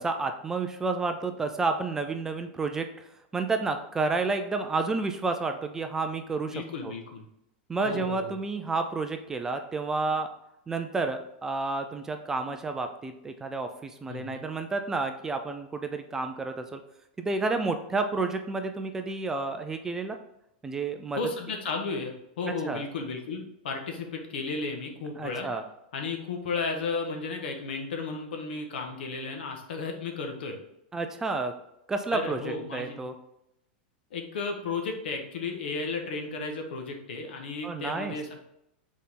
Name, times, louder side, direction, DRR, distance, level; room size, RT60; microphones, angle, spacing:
voice 1, 0.0-3.1 3.3-6.5 6.8-6.9 7.7-10.3 10.7-16.8 17.2-20.2 20.6-21.2 22.7-22.8 25.2-25.6 30.9-31.5 31.9-33.1 37.6-38.1, right 3 dB, 10° right, 6 dB, 0.3 m, -30 dB
voice 2, 6.5-7.2 7.8-8.3 14.1-14.5 21.2-25.5 25.9-30.6 32.1-33.0 34.1-38.4, left 4 dB, 80° left, 4 dB, 1.4 m, -34 dB
6.3 x 4.1 x 3.7 m, 0.81 s
supercardioid pair, 170°, 5 cm